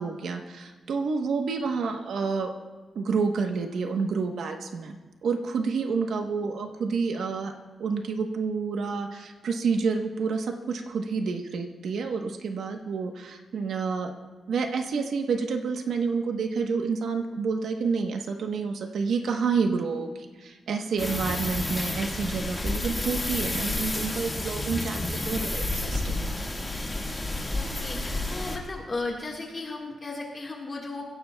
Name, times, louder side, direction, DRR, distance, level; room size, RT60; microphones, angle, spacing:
voice 1, 0.0-2.5 2.9-5.0 5.2-7.5 7.8-14.1 14.5-26.3, right 5 dB, 90° right, 4 dB, 1.0 m, -29 dB
sound 1, 21.0-28.6, left 2 dB, 15° left, 1.7 m, -30 dB
voice 2, 27.5-31.0, left 3 dB, 30° left, -2 dB, 1.6 m, -35 dB
27.0 x 15.5 x 2.3 m, 1.3 s
wide cardioid pair, 165°, 0 cm